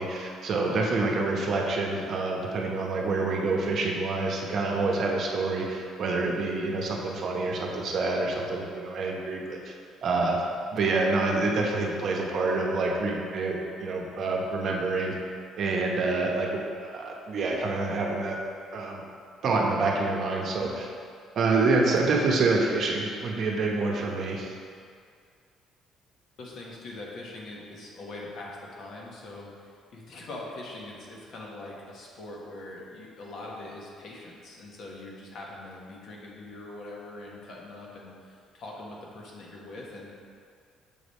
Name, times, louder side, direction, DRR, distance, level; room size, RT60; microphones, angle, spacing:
voice 1, 0.0-9.7 10.0-10.4 10.7-15.1 15.6-18.4 18.7-19.0 19.4-20.9 21.3-24.5, right 3 dB, 55° right, 0 dB, 0.8 m, -27 dB
voice 2, 26.4-40.1, left 2 dB, 55° left, -3 dB, 1.2 m, -42 dB
7.0 x 3.3 x 4.1 m, 2.2 s
cardioid pair, 120°, 0 cm